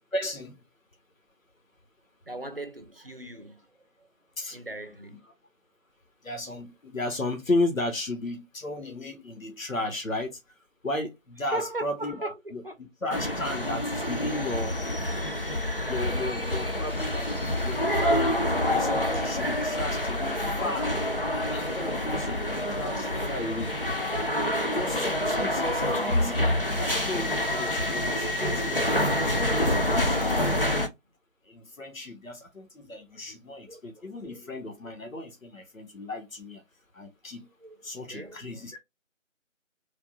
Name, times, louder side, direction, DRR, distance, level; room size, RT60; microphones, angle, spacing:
voice 1, 0.1-0.6 4.4-4.6 6.2-10.4 10.8-14.8 15.9-17.3 17.6-20.9 21.5-22.4 22.8-23.7 24.6-26.5 26.8-28.9 29.5-30.9 31.5-36.6 36.9-37.5 37.8-38.8, left 2 dB, 80° left, 1.1 m, -34 dB
voice 2, 2.3-4.1 4.5-5.2 11.5-12.7 23.2-23.8 25.4-25.7 32.9-34.5 37.6-38.8, right 2 dB, 45° right, 0.6 m, -40 dB
sound 1, 13.1-30.9, left 1 dB, 45° left, 0.6 m, -27 dB
3.5 x 2.3 x 3.9 m
figure-of-eight pair, 170°, 39 cm